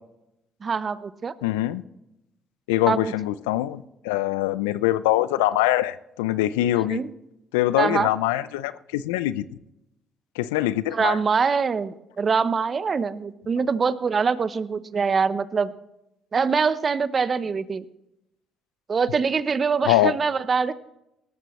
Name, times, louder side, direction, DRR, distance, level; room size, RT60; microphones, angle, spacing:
voice 1, 0.6-1.3 2.9-3.1 6.9-7.1 7.8-8.1 10.9-15.7 16.3-17.8 18.9-20.7, right 5 dB, 40° right, 15 dB, 0.8 m, -24 dB
voice 2, 1.4-1.8 2.7-7.0 7.5-9.5 10.4-11.2 19.9-20.1, left 15 dB, 90° left, 16 dB, 0.5 m, -23 dB
18.5 x 13.5 x 3.2 m, 0.88 s
hypercardioid pair, 60°, 0 cm